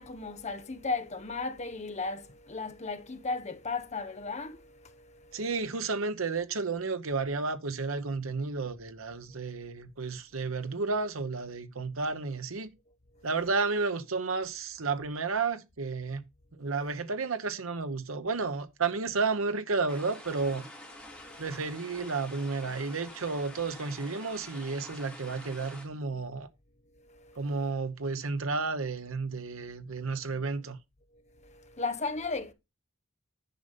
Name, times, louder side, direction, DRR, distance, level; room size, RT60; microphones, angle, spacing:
voice 1, 0.0-5.4 13.2-13.3 21.2-21.4 27.0-27.5 31.4-32.5, left 3 dB, 35° left, 1.0 m, -36 dB
voice 2, 5.3-12.7 13.2-16.2 16.6-20.7 21.4-26.5 27.4-30.8, right 4 dB, 85° right, 0.9 m, -32 dB
sound 1, 19.9-25.8, left 1 dB, 5° left, 3.7 m, -47 dB
10.5 x 5.4 x 5.1 m
head